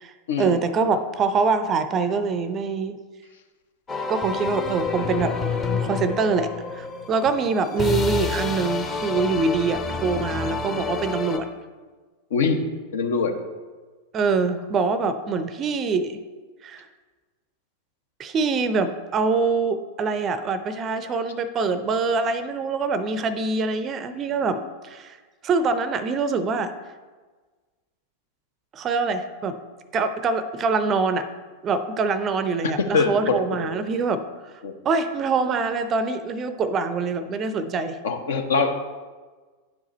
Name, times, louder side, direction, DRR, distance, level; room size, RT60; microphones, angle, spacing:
voice 1, 0.0-3.0 4.1-5.4 5.8-11.5 14.1-16.2 16.6-16.8 18.2-25.2 25.4-26.7 28.7-29.6 29.9-31.3 31.6-34.2 34.8-38.0, right 4 dB, 30° right, 11 dB, 0.5 m, -24 dB
sound 1, 3.9-11.4, left 4 dB, 20° left, 0.8 m, -29 dB
voice 2, 12.9-13.4 32.8-33.1 33.6-33.8 34.6-34.7 38.0-38.7, left 4 dB, 60° left, 6 dB, 0.8 m, -23 dB
10.5 x 4.8 x 4.1 m, 1.4 s
figure-of-eight pair, 90°, 0 cm